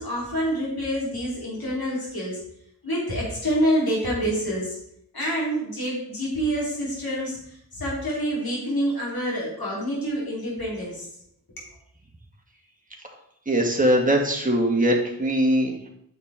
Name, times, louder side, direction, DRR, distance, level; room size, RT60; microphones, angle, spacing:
voice 1, 0.0-2.4 2.8-4.8 5.1-11.1, equal, 85° left, -5 dB, 3.9 m, -27 dB
voice 2, 13.5-15.9, right 1 dB, 20° right, 0 dB, 2.0 m, -21 dB
9.1 x 6.7 x 3.8 m, 0.72 s
cardioid pair, 40°, 36 cm